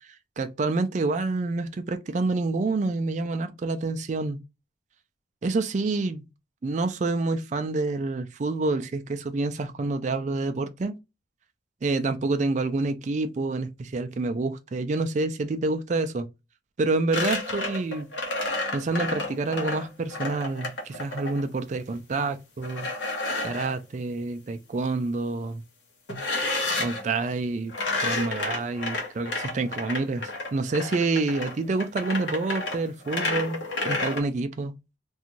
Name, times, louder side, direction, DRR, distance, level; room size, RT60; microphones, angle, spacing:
voice 1, 0.4-4.4 5.4-6.2 6.6-10.9 11.8-16.3 16.8-18.1 18.7-22.9 23.4-25.6 26.8-27.7 28.0-30.2 30.5-33.6 33.8-34.7, right 3 dB, 40° right, 0.3 m, -28 dB
Screw in a Wooden Box, 17.1-21.4 22.6-23.7 26.1-27.0 27.7-34.2, left 2 dB, 85° left, 0.9 m, -30 dB
2.5 x 2.3 x 2.8 m
head